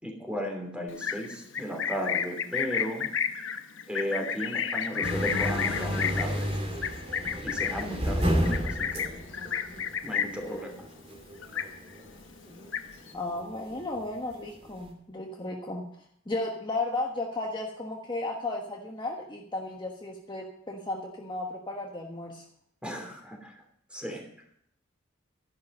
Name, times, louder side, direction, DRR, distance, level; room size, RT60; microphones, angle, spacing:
voice 1, 0.0-3.1 3.9-6.4 7.4-9.0 10.0-10.7 22.8-23.5 23.9-24.2, equal, 5° right, 2 dB, 2.9 m, -35 dB
Livestock farm animals working animals, 0.9-10.5 10.8-11.2 11.4-12.1 12.4-13.1, left 7 dB, 70° left, 1.0 m, -31 dB
sound 1, 5.0-14.9, equal, 35° right, 2.8 m, -32 dB
voice 2, 10.1-10.8 13.1-15.8 16.3-22.4, left 2 dB, 25° left, 0 dB, 1.3 m, -34 dB
12.5 x 11.5 x 5.5 m, 0.69 s
head